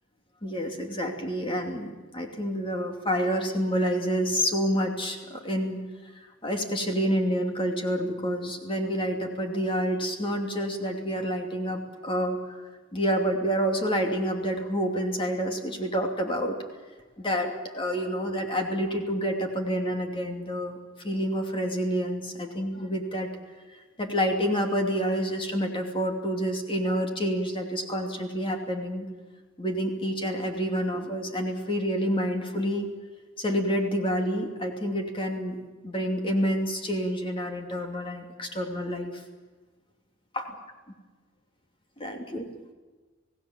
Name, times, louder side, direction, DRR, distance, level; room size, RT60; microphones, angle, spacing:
voice 1, 0.4-5.8 6.4-16.6 17.2-20.8 21.0-23.3 23.7-29.1 29.6-32.9 33.4-35.6 35.8-39.2 40.3-40.4 42.0-42.5, equal, 25° left, 2 dB, 2.7 m, -28 dB
27.5 x 17.5 x 7.5 m, 1.3 s
head